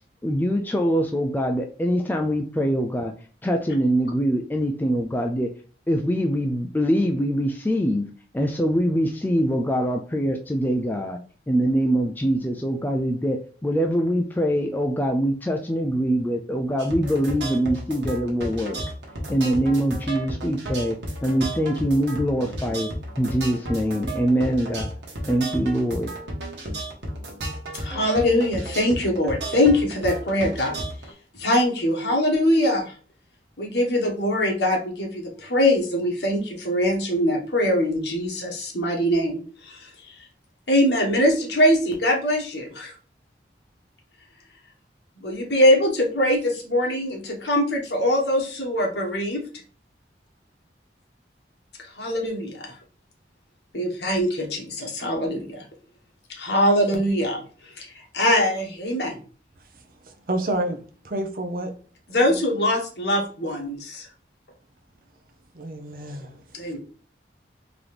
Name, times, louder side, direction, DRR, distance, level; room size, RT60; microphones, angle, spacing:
voice 1, 0.2-3.1 3.4-5.5 5.9-8.0 8.3-11.2 11.5-18.8 19.3-22.9 23.2-24.9 25.3-26.1, equal, 10° left, 0.3 m, -23 dB
sound 1, 16.8-31.1, right 1 dB, 80° right, 1.2 m, -33 dB
voice 2, 27.7-30.8 31.3-32.9 33.6-40.1 40.7-43.0 45.2-49.4 51.8-52.8 53.7-55.6 56.3-59.2 62.1-64.1 66.5-66.8, left 1 dB, 75° left, 1.4 m, -23 dB
voice 3, 60.0-61.7 65.5-66.4 66.6-66.7, right 1 dB, 50° right, 0.7 m, -29 dB
3.9 x 2.9 x 3.3 m
head